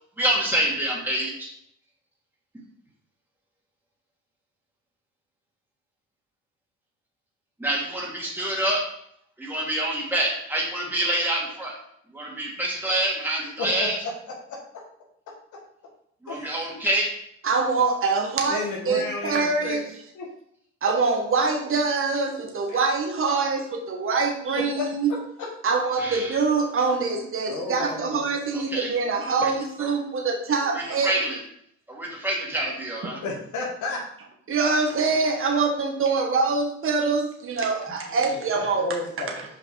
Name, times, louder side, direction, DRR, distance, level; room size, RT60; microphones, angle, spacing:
voice 1, 0.2-1.5 7.6-8.8 9.4-11.7 12.1-14.0 16.2-17.1 26.0-26.4 28.5-28.9 29.3-29.5 29.8-29.9 30.7-31.4 31.9-33.2, right 1 dB, 5° right, -4 dB, 2.3 m, -27 dB
voice 2, 16.3-16.7 18.5-19.9 20.2-20.3 22.7-22.8 24.8-24.9 27.5-28.3 33.2-34.0 38.1-39.4, left 3 dB, 75° left, -2 dB, 1.6 m, -32 dB
voice 3, 17.4-19.8 20.8-25.1 25.6-31.1 33.0-33.2 34.5-38.9, right 4 dB, 45° right, 2 dB, 1.4 m, -24 dB
5.9 x 5.1 x 4.7 m, 0.71 s
cardioid pair, 90°, 30 cm